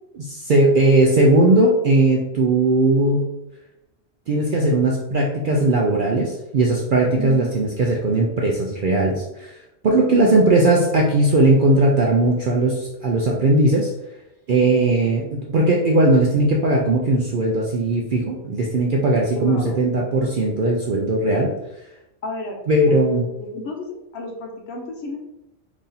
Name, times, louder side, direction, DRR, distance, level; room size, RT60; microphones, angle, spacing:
voice 1, 0.2-3.3 4.3-9.6 9.8-13.9 14.5-21.5 22.7-23.3, right 2 dB, 65° right, -1 dB, 0.5 m, -18 dB
voice 2, 7.2-7.5 10.1-10.4 19.4-19.8 22.2-22.6 22.9-23.0 23.4-25.2, left 2 dB, 60° left, 1 dB, 0.9 m, -31 dB
3.0 x 2.7 x 3.8 m, 0.88 s
omnidirectional pair, 1.3 m